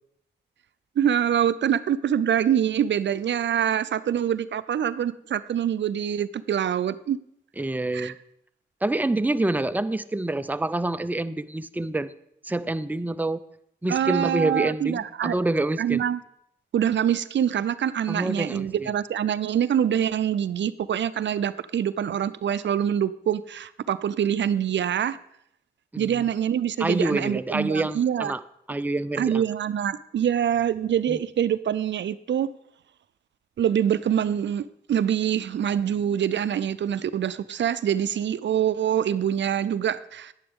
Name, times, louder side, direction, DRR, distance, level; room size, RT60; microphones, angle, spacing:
voice 1, 1.0-7.2 7.9-8.1 13.9-15.4 15.8-16.2 16.7-25.2 26.0-28.3 29.2-32.5 33.6-40.3, right 9 dB, 75° right, 16 dB, 0.4 m, -25 dB
voice 2, 7.6-8.2 8.8-12.1 12.4-13.4 13.8-16.0 18.1-18.9 25.9-26.2 26.8-28.4 28.7-29.4 31.1-31.2, right 2 dB, 10° right, 12 dB, 0.5 m, -27 dB
10.0 x 9.8 x 3.6 m, 0.74 s
cardioid pair, 55°, 19 cm